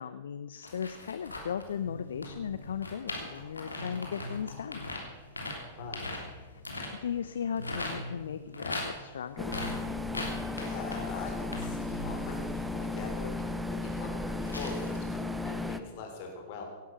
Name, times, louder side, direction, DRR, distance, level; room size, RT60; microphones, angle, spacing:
voice 1, 0.0-4.8 6.4-6.6 7.0-9.5, left 8 dB, 65° left, 13 dB, 0.6 m, -37 dB
sound 1, 0.6-7.9 8.2-15.3 15.6-15.7, left 2 dB, 80° left, 3.1 m, -41 dB
sound 2, 1.2-13.4, left 1 dB, 90° right, 1.4 m, -47 dB
voice 2, 5.7-6.1 10.5-16.6, left 4 dB, 45° left, 3 dB, 3.8 m, -43 dB
sound 3, 9.4-15.8, left 2 dB, 5° right, 0.9 m, -35 dB
17.0 x 11.5 x 6.0 m, 1.3 s
figure-of-eight pair, 100°, 0 cm